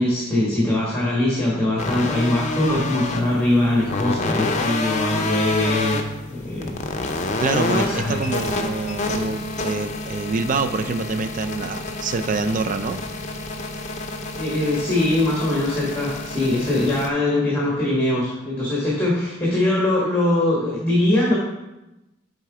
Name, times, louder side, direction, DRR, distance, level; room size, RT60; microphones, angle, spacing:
voice 1, 0.0-6.0 6.3-7.0 7.6-8.2 14.4-21.4, left 1 dB, 10° left, -6 dB, 1.2 m, -22 dB
sound 1, 1.8-17.1, left 2 dB, 35° left, 0.6 m, -28 dB
voice 2, 7.4-13.0, right 4 dB, 40° right, 9 dB, 0.4 m, -26 dB
7.4 x 3.7 x 4.8 m, 0.98 s
head